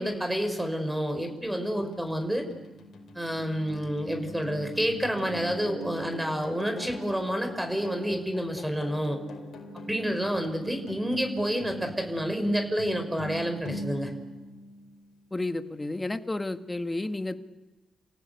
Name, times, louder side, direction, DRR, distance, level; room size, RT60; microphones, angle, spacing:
voice 1, 0.0-2.5 3.1-9.2 9.9-14.1, equal, 10° right, 6 dB, 5.7 m, -29 dB
sound 1, 1.1-15.3, equal, 70° left, 4.8 m, -42 dB
voice 2, 15.3-17.4, left 2 dB, 20° left, 8 dB, 1.9 m, -31 dB
29.5 x 17.0 x 8.5 m, 1.1 s
supercardioid pair, 45°, 0 cm